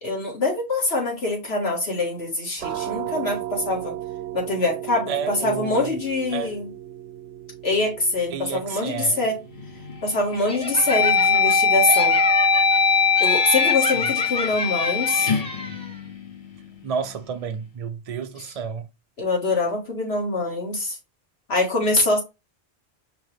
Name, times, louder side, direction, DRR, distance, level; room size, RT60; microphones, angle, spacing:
voice 1, 0.0-3.9 4.3-6.7 7.6-9.4 10.0-12.2 13.2-15.4 19.2-21.0 21.5-22.2, left 2 dB, 75° left, 1.9 m, -24 dB
sound 1, 2.6-14.1, right 12 dB, 75° right, 0.8 m, -37 dB
voice 2, 5.1-6.0 6.3-6.6 8.3-9.3 13.9-14.1 16.8-18.9, right 6 dB, 45° right, 0.5 m, -31 dB
sound 2, 9.6-10.0 10.5-16.7, left 5 dB, 50° left, 0.9 m, -21 dB
Laughter, 10.5-11.6 11.9-12.8 13.2-15.9, equal, 10° left, 0.5 m, -30 dB
5.2 x 2.9 x 3.3 m
omnidirectional pair, 1.1 m